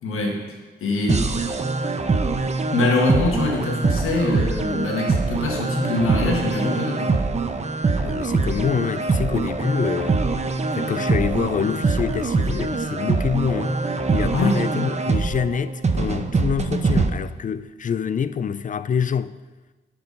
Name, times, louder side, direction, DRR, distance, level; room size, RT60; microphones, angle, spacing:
voice 1, 0.0-1.4 2.7-7.2 8.3-8.7 14.3-14.7, left 2 dB, 85° left, 1.6 m, -24 dB
sound 1, 1.1-17.1, right 3 dB, 35° right, 0.8 m, -23 dB
voice 2, 8.0-10.2 10.7-13.8 14.1-19.4, left 7 dB, 40° left, 0.4 m, -26 dB
10.0 x 4.6 x 5.3 m
cardioid pair, 55°, 21 cm